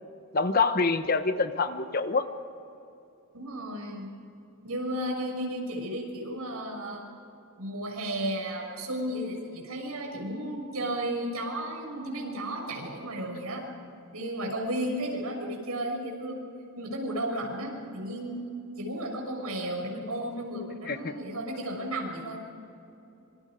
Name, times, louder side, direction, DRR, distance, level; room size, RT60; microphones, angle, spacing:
voice 1, 0.3-2.3 20.9-21.1, left 4 dB, 40° left, 9 dB, 1.1 m, -26 dB
voice 2, 3.3-4.1 4.6-7.0 7.6-13.6 14.1-16.4 16.8-18.5 18.8-22.5, right 1 dB, 85° right, 1 dB, 6.5 m, -33 dB
26.5 x 26.5 x 5.1 m, 2.8 s
head